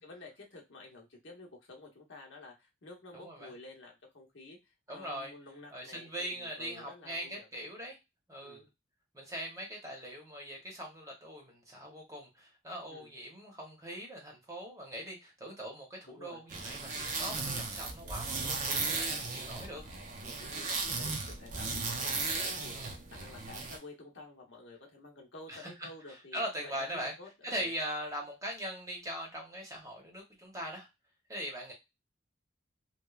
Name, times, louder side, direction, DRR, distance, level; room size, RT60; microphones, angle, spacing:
voice 1, 0.0-7.5 8.4-8.7 12.9-13.1 16.1-16.4 20.2-27.7, left 2 dB, 70° left, 0 dB, 0.9 m, -51 dB
voice 2, 3.1-3.5 4.9-5.3 5.7-8.0 8.3-8.7 9.1-19.8 22.7-23.0 25.5-27.1 27.4-30.9 31.3-31.7, equal, 15° right, -1 dB, 0.8 m, -41 dB
sound 1, 16.5-23.8, right 3 dB, 40° right, 0.5 m, -36 dB
3.1 x 2.1 x 2.3 m, 0.22 s
head